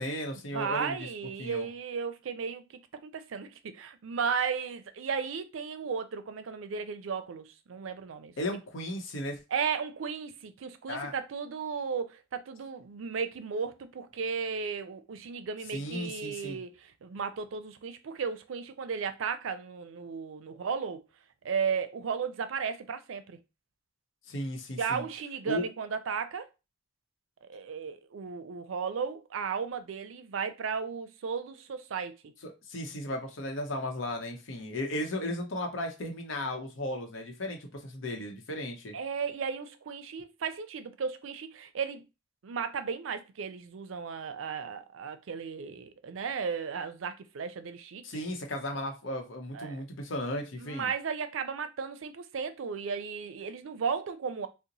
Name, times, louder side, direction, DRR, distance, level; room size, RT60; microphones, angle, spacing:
voice 1, 0.0-1.1 1.4-1.7 8.4-9.4 10.9-11.1 15.7-16.6 20.5-20.6 24.3-25.0 25.5-25.6 32.4-38.9 48.0-50.9, left 1 dB, 75° left, 0.8 m, -35 dB
voice 2, 0.5-2.6 2.9-8.3 9.5-21.0 21.4-23.4 24.8-26.5 27.5-32.2 38.9-42.0 42.4-48.0 49.5-49.8 50.6-54.5, right 6 dB, 85° right, 0.4 m, -35 dB
2.8 x 2.1 x 3.9 m
head